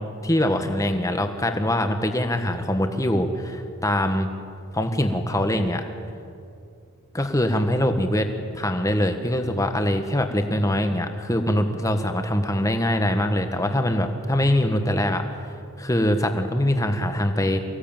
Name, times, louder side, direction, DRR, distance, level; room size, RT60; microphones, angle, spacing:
voice 1, 0.2-4.3 4.7-5.8 7.1-8.3 8.5-15.2 15.8-17.6, left 1 dB, 15° left, 6 dB, 1.4 m, -23 dB
24.0 x 16.5 x 9.0 m, 2.6 s
head